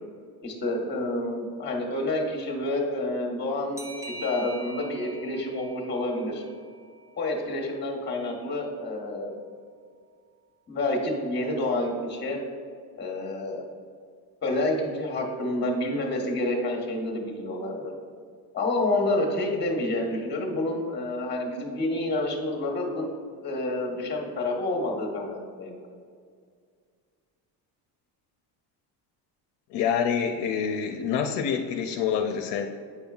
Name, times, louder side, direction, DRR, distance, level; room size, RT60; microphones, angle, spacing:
voice 1, 0.4-3.9 4.2-6.4 7.2-9.3 10.7-12.4 13.0-13.6 14.4-17.9 18.5-23.0 23.4-25.8, left 2 dB, 25° left, 0 dB, 1.2 m, -28 dB
sound 1, 3.8-7.1, right 1 dB, 5° right, 0.5 m, -43 dB
voice 2, 29.7-32.7, left 7 dB, 75° left, 4 dB, 0.6 m, -27 dB
8.9 x 5.3 x 2.4 m, 2.1 s
cardioid pair, 150°, 41 cm